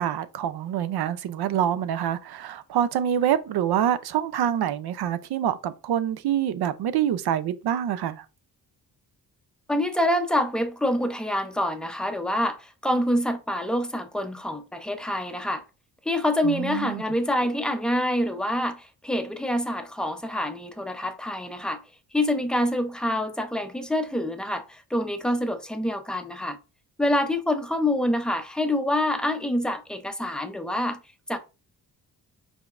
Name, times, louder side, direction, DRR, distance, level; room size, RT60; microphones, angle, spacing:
voice 1, 0.0-8.2 16.4-17.0, right 10 dB, 75° right, 0.6 m, -26 dB
voice 2, 9.7-15.6 16.1-21.8 22.1-26.6 27.0-31.0 31.3-31.4, left 1 dB, ahead, 0.5 m, -26 dB
5.0 x 3.5 x 2.5 m
cardioid pair, 120°, 39 cm